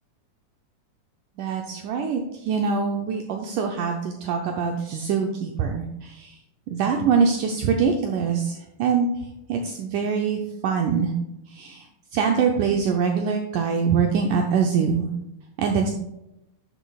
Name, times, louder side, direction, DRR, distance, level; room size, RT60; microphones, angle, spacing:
voice 1, 1.4-6.3 6.7-8.5 8.8-9.1 9.5-11.1 11.6-11.8 12.1-15.1 15.6-15.9, right 6 dB, 85° right, 2 dB, 1.8 m, -23 dB
12.0 x 7.0 x 2.4 m, 0.87 s
omnidirectional pair, 4.6 m